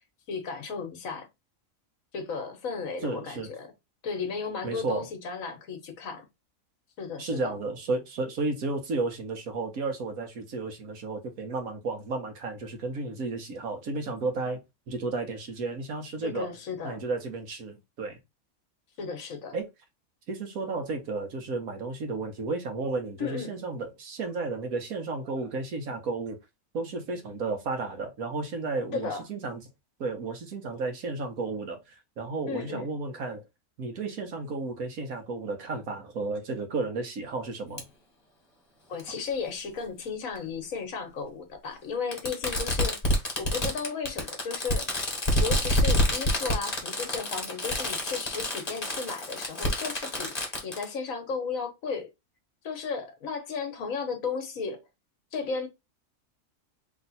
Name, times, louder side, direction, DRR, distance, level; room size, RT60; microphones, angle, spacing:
voice 1, 0.3-1.3 2.1-3.7 4.0-6.2 7.0-7.5 16.2-17.0 19.0-19.6 23.2-23.5 28.9-29.2 32.5-32.9 38.9-44.9 45.4-52.1 52.6-54.8 55.3-55.7, left 5 dB, 70° left, 1.4 m, -34 dB
voice 2, 3.0-3.5 4.6-5.1 7.2-14.6 14.9-16.5 16.8-18.2 19.5-19.7 20.3-26.4 26.7-29.6 30.0-33.4 33.8-37.8, right 3 dB, 80° right, 1.6 m, -33 dB
Fireworks, 37.8-37.9 39.0-39.1 40.4-40.5 42.1-50.8, left 1 dB, 30° left, 1.4 m, -28 dB
3.5 x 3.1 x 4.0 m
omnidirectional pair, 1.5 m